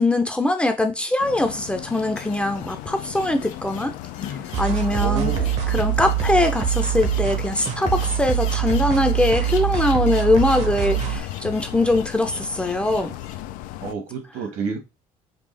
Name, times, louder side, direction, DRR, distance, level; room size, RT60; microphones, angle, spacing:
voice 1, 0.0-3.9 4.6-5.3 5.7-13.2, left 2 dB, 10° left, 0.6 m, -22 dB
sound 1, 1.2-13.9, left 14 dB, 80° left, 0.4 m, -37 dB
sound 2, 1.8-13.4, left 7 dB, 60° left, 1.1 m, -42 dB
sound 3, 4.5-11.2, right 10 dB, 50° right, 1.0 m, -24 dB
voice 2, 4.9-5.6 13.8-14.8, right 6 dB, 70° right, 1.7 m, -29 dB
5.2 x 2.4 x 3.3 m
cardioid pair, 125°, 14 cm